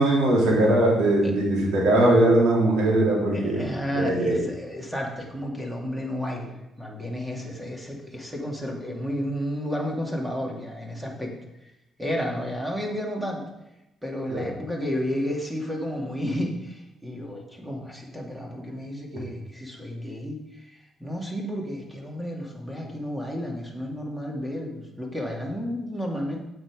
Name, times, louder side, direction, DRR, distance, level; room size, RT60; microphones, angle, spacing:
voice 1, 0.0-3.6 3.9-4.4 14.3-14.4, right 1 dB, 90° right, -3 dB, 3.6 m, -20 dB
voice 2, 3.3-11.3 12.0-13.4 14.0-26.4, equal, 10° right, 0 dB, 2.5 m, -32 dB
8.6 x 8.0 x 5.2 m, 0.91 s
cardioid pair, 90°, 0 cm